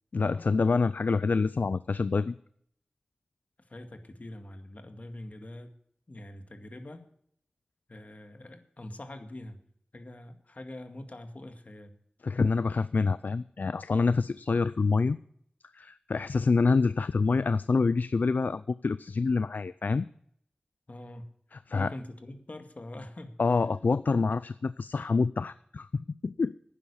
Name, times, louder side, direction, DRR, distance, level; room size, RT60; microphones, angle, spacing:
voice 1, 0.1-2.4 12.2-15.2 15.7-20.1 21.5-21.9 23.4-26.5, left 4 dB, 80° left, 16 dB, 0.4 m, -27 dB
voice 2, 3.7-5.7 6.1-7.0 7.9-9.6 9.9-12.0 20.9-21.3 21.7-23.3, left 1 dB, 55° left, 7 dB, 2.1 m, -44 dB
11.5 x 9.8 x 7.0 m, 0.66 s
wide cardioid pair, 45°, 3 cm